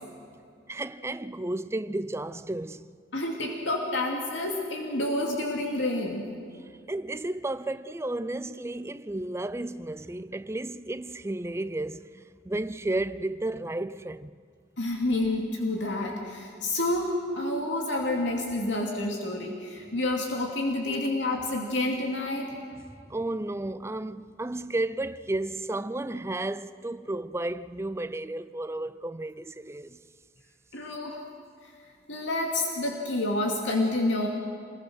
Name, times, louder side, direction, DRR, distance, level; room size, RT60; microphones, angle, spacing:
voice 1, 0.7-2.9 6.9-14.3 22.8-30.0, right 2 dB, 15° right, 0.5 m, -33 dB
voice 2, 3.1-6.3 14.8-22.5 30.7-31.2 32.1-34.3, left 2 dB, 80° left, 2.6 m, -29 dB
27.0 x 21.5 x 6.3 m
head